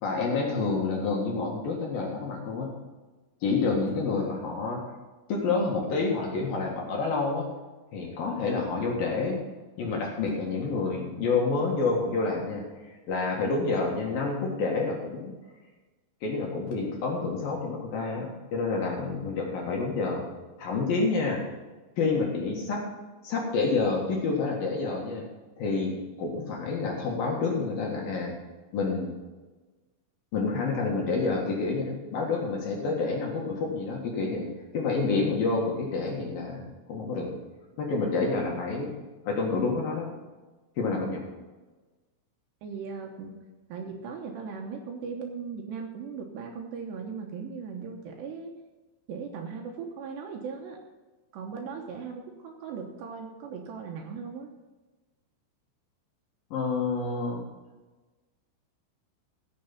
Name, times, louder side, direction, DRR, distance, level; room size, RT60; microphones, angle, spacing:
voice 1, 0.0-2.7 3.4-4.8 5.3-7.5 7.9-9.4 9.8-15.3 16.2-20.2 20.6-21.4 22.0-22.8 23.2-25.2 25.6-28.3 28.7-29.1 30.3-34.5 34.7-37.3 37.8-38.9 39.3-40.1 40.8-41.2 56.5-57.4, left 4 dB, 60° left, -1 dB, 2.8 m, -28 dB
voice 2, 42.6-43.4 43.7-48.5 49.1-50.8 51.3-54.5, right 5 dB, 70° right, 2 dB, 2.8 m, -38 dB
16.0 x 6.6 x 5.8 m, 1.2 s
omnidirectional pair, 5.7 m